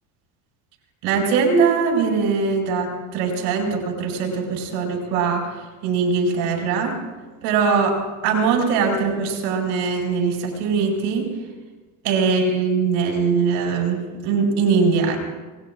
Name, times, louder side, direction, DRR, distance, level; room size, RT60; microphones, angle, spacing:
voice 1, 1.0-5.5 5.8-6.9 7.4-11.3 12.0-15.2, right 5 dB, 90° right, 0 dB, 5.6 m, -21 dB
26.0 x 21.0 x 2.5 m, 1.3 s
supercardioid pair, 100°, 45 cm